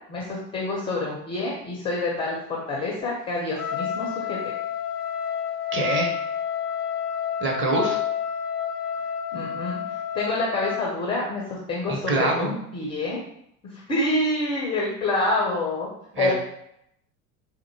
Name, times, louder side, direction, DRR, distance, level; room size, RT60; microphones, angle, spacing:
voice 1, 0.1-4.4 9.3-13.2 13.7-15.9 16.2-16.3, left 2 dB, 15° left, -2 dB, 0.4 m, -27 dB
Trumpet, 3.5-10.8, left 8 dB, 85° left, 0.5 m, -29 dB
voice 2, 5.7-6.1 7.4-8.0 11.9-12.5 16.1-16.3, right 3 dB, 25° right, 0 dB, 0.8 m, -25 dB
4.2 x 2.5 x 2.7 m, 0.75 s
figure-of-eight pair, 75°, 46 cm